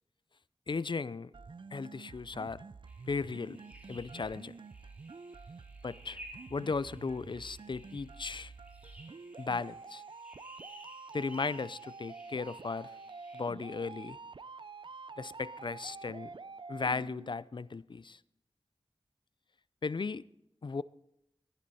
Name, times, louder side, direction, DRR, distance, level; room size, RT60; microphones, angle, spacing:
voice 1, 0.7-1.3 1.7-2.6 3.1-3.6 3.9-4.5 5.8-6.2 6.5-8.5 9.4-10.0 11.1-12.9 13.3-14.2 15.2-16.3 16.7-18.2 19.8-20.2 20.6-20.8, left 4 dB, 50° left, 0.4 m, -36 dB
sound 1, 1.3-17.3, right 4 dB, 50° right, 0.4 m, -48 dB
sound 2, 2.9-13.4, equal, 15° right, 3.0 m, -56 dB
14.5 x 10.5 x 4.2 m
wide cardioid pair, 60°, 10 cm